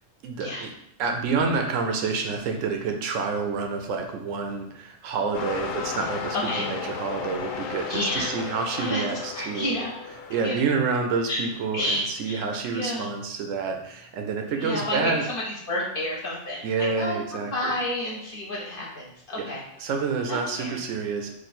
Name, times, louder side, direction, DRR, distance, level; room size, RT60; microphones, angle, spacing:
voice 1, 0.2-0.7 1.0-9.8 10.3-15.2 16.6-17.7 19.4-19.5 19.8-21.3, right 5 dB, 80° right, 4 dB, 0.9 m, -28 dB
sound 1, 5.3-11.7 12.4-12.6, left 6 dB, 80° left, 1.0 m, -35 dB
voice 2, 6.3-6.7 7.9-8.3 8.8-9.0 9.3-9.9 10.4-10.6 11.3-11.4 11.7-13.1 14.6-19.6 20.3-20.8, left 1 dB, 50° left, -3 dB, 1.0 m, -30 dB
3.1 x 2.5 x 4.1 m, 0.75 s
omnidirectional pair, 1.3 m